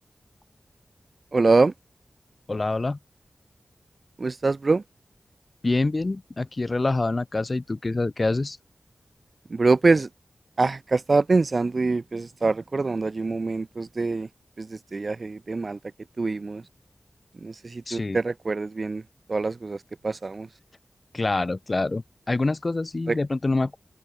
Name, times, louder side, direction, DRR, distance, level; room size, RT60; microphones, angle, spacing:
voice 1, 1.3-1.7 4.2-4.8 9.5-10.1 10.6-14.3 14.6-15.8 16.2-16.6 17.3-19.0 19.3-19.8 20.0-20.5 23.1-23.2, right 3 dB, 55° right, 2.4 m, -24 dB
voice 2, 2.5-3.0 5.6-8.6 17.9-18.2 21.1-23.8, left 2 dB, 40° left, 2.2 m, -26 dB
open air
wide cardioid pair, 75°, 0 cm